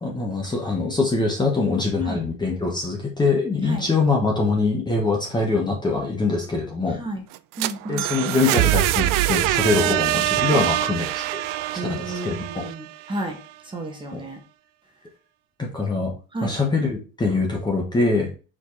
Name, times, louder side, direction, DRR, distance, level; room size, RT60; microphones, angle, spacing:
voice 1, 0.0-7.0 7.9-11.4 11.9-12.7 14.1-14.2 15.6-16.1 16.4-18.3, left 3 dB, 10° left, 0 dB, 1.1 m, -23 dB
sound 1, 7.3-13.2, right 16 dB, 60° right, 0.5 m, -24 dB
voice 2, 7.6-8.0 10.6-10.7 11.8-13.4 13.7-14.4 16.3-16.6, right 2 dB, 15° right, 1 dB, 1.2 m, -31 dB
4.9 x 4.5 x 4.2 m, 0.34 s
cardioid pair, 170°, 37 cm